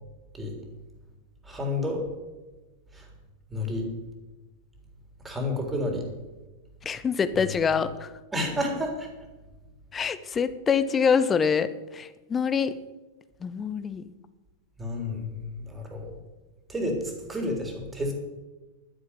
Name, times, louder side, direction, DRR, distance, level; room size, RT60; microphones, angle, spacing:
voice 1, 1.5-2.0 3.5-3.9 5.2-6.0 8.3-9.1 14.8-15.3 15.7-16.1 16.7-17.0 17.3-18.1, left 1 dB, 10° right, 2 dB, 3.8 m, -30 dB
voice 2, 6.8-8.1 9.9-12.8 13.4-14.0, left 6 dB, 20° left, 14 dB, 0.8 m, -25 dB
11.5 x 10.5 x 8.2 m, 1.1 s
figure-of-eight pair, 90°, 0 cm